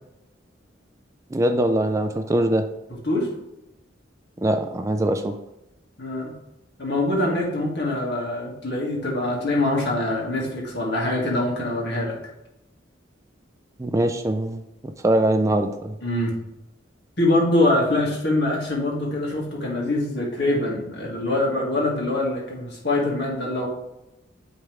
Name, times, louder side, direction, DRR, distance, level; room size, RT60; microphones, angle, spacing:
voice 1, 1.3-2.7 4.4-5.4 13.8-16.0, right 1 dB, 15° right, 7 dB, 0.3 m, -22 dB
voice 2, 6.0-6.3 6.8-12.2 16.0-16.4 17.2-23.7, left 1 dB, 60° left, -2 dB, 1.9 m, -24 dB
9.2 x 3.6 x 3.3 m, 0.89 s
head